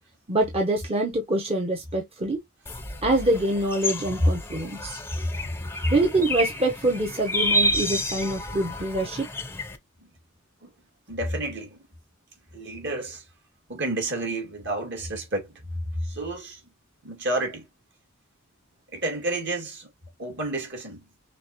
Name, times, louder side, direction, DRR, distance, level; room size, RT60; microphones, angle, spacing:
voice 1, 0.3-2.4 3.0-5.0 5.9-9.3, right 1 dB, 30° right, 0.9 m, -25 dB
sound 1, 2.7-9.8, equal, 10° left, 0.6 m, -30 dB
voice 2, 11.1-11.9 12.5-13.2 13.7-15.7 16.0-16.6 17.0-17.7 18.9-19.9 20.2-21.0, right 1 dB, 60° right, 2.2 m, -29 dB
6.3 x 2.4 x 2.9 m
head